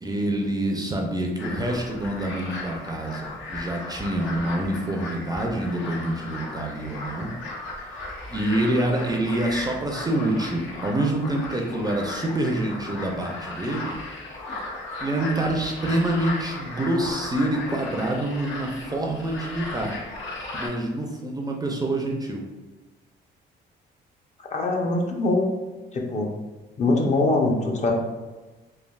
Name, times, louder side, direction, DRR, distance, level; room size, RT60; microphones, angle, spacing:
voice 1, 0.0-7.3 8.3-13.9 15.0-20.0 20.5-22.4, right 1 dB, 20° right, 0 dB, 0.4 m, -26 dB
sound 1, 1.4-20.7, left 2 dB, 75° left, 0.8 m, -36 dB
voice 2, 24.5-25.5 25.9-26.3 26.8-27.9, left 2 dB, 35° left, 0 dB, 0.5 m, -22 dB
3.2 x 2.3 x 2.3 m, 1.2 s
cardioid pair, 90°, 20 cm